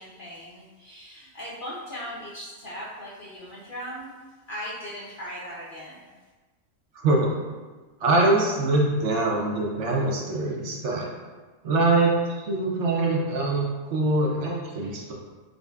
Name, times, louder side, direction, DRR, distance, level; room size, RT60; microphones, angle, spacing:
voice 1, 0.0-4.2 4.5-6.0, equal, 55° left, -7 dB, 0.6 m, -38 dB
voice 2, 6.9-7.3 8.0-11.1 11.6-15.1, right 2 dB, 70° right, -2 dB, 0.9 m, -23 dB
4.9 x 2.1 x 2.3 m, 1.3 s
omnidirectional pair, 1.4 m